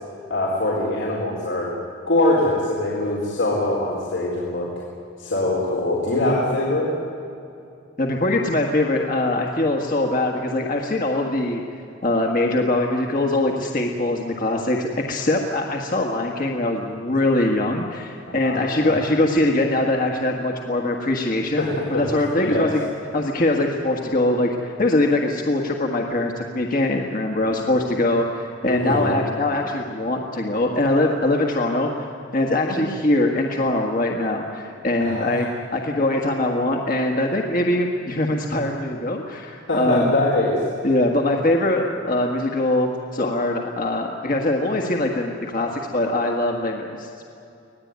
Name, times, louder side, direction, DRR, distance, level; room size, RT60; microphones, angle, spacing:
voice 1, 0.3-1.7 2.1-4.7 5.2-6.9 18.4-19.0 21.6-22.0 22.4-22.7 28.7-29.1 32.7-32.8 35.0-35.4 39.7-40.6, left 1 dB, 85° left, -5 dB, 4.3 m, -23 dB
voice 2, 8.0-11.6 12.0-22.9 23.1-32.1 32.3-35.5 35.7-40.1 40.8-47.2, left 1 dB, 45° left, 1 dB, 1.7 m, -22 dB
25.5 x 17.5 x 9.6 m, 2.7 s
head